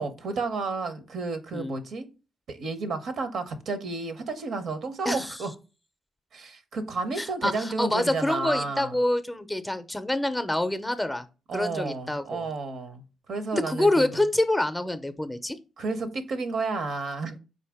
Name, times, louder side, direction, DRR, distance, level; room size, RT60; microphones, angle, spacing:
voice 1, 0.0-2.1 2.5-5.5 6.3-8.9 11.5-13.0 13.3-14.2 15.8-17.4, right 3 dB, 65° right, 0.6 m, -31 dB
voice 2, 7.2-11.3 11.5-12.5 13.5-15.6, left 1 dB, 10° left, 0.5 m, -26 dB
4.3 x 2.6 x 3.4 m
supercardioid pair, 50°, 0 cm